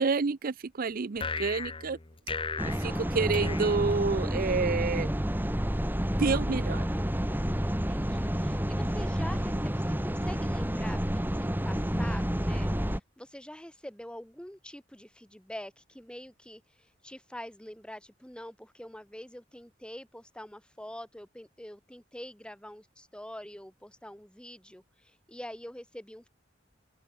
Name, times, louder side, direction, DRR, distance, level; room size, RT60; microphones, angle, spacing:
voice 1, 0.0-2.0 2.6-5.1 6.2-6.9, right 4 dB, 50° right, 0.6 m, -29 dB
sound 1, 1.2-4.6, left 4 dB, 30° left, 1.1 m, -37 dB
sound 2, 2.6-13.0, equal, 10° right, 2.5 m, -29 dB
voice 2, 7.6-26.3, left 1 dB, 5° left, 3.7 m, -45 dB
open air
head